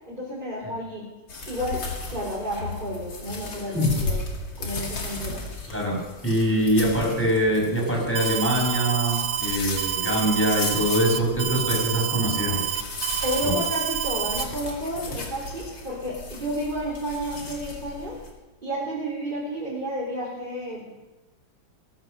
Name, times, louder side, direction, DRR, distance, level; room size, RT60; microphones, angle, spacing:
voice 1, 0.1-1.1 1.5-4.3 4.6-5.4 13.2-18.2 18.6-20.9, equal, 25° right, -6 dB, 3.7 m, -31 dB
sound 1, 1.3-18.3, left 3 dB, 75° left, 3.1 m, -36 dB
voice 2, 6.2-12.6 13.4-13.6, equal, 5° left, -2 dB, 5.8 m, -23 dB
Alarm, 8.1-14.4, right 9 dB, 75° right, 1.5 m, -28 dB
20.0 x 9.5 x 6.7 m, 1.1 s
omnidirectional pair, 2.1 m